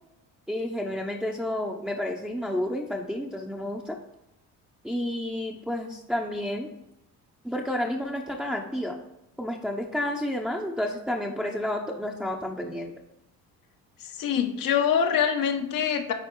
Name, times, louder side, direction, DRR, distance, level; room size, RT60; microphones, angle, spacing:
voice 1, 0.5-4.0 4.8-6.7 7.4-9.0 9.4-12.9, left 1 dB, ahead, 1 dB, 0.8 m, -30 dB
voice 2, 14.2-16.1, left 8 dB, 70° left, 5 dB, 1.1 m, -24 dB
9.3 x 4.3 x 4.7 m, 0.88 s
cardioid pair, 100°, 35 cm